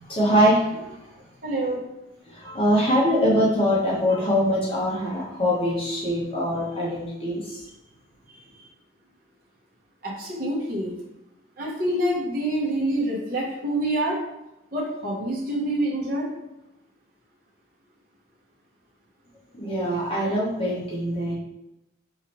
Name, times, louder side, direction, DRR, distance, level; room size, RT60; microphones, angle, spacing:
voice 1, 0.1-0.8 2.3-7.6 19.5-21.3, equal, 25° left, -7 dB, 1.1 m, -23 dB
voice 2, 1.4-1.8 10.0-10.9 11.6-14.2 14.7-16.3, right 1 dB, 45° right, -5 dB, 1.0 m, -26 dB
4.7 x 3.2 x 3.0 m, 0.90 s
head